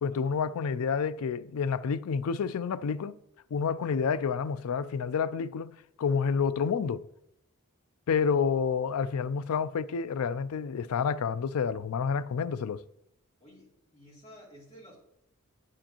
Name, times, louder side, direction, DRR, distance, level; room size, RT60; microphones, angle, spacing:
voice 1, 0.0-3.1 3.5-7.0 8.1-12.8, left 6 dB, 85° left, 0.4 m, -29 dB
voice 2, 13.4-15.0, equal, 30° left, 3.1 m, -53 dB
9.9 x 7.6 x 3.0 m
head